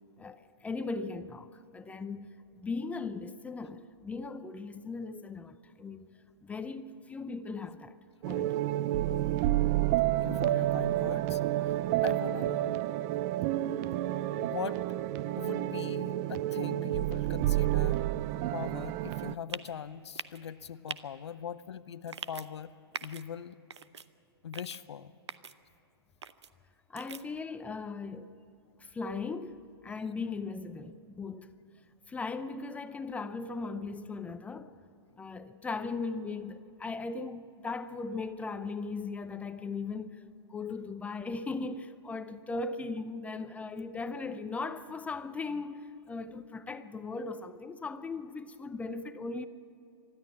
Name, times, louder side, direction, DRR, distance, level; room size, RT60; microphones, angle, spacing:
voice 1, 0.2-6.1 6.4-8.0 8.3-8.6 26.9-28.3 28.8-31.5 32.1-34.7 35.2-49.5, left 4 dB, 10° left, 0.6 m, -38 dB
sound 1, 8.2-19.3, right 14 dB, 40° right, 0.5 m, -30 dB
voice 2, 10.2-12.8 13.7-13.9 14.4-14.8 15.4-18.1 18.5-22.7 23.0-23.6 24.4-25.1, left 8 dB, 80° left, 0.6 m, -41 dB
sound 2, 19.5-19.7 20.1-20.4 20.9-21.0 22.1-22.5 22.9-23.2 23.7-24.1 24.5-24.8 25.3-25.5 26.2-26.5 27.0-27.2, right 6 dB, 90° right, 0.8 m, -41 dB
21.0 x 13.0 x 9.9 m
hypercardioid pair, 130°, 14 cm